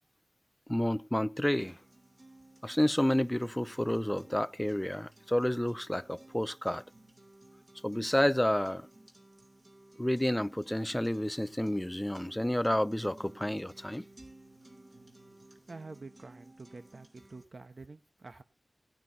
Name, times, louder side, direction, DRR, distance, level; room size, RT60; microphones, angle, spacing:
voice 1, 0.7-1.8 2.6-6.8 7.8-8.9 10.0-14.1, left 1 dB, 10° left, 0.6 m, -30 dB
sound 1, 1.4-17.4, right 2 dB, 35° right, 3.1 m, -56 dB
voice 2, 15.5-18.4, right 3 dB, 55° right, 1.2 m, -48 dB
18.5 x 9.5 x 2.8 m
wide cardioid pair, 75°, 0 cm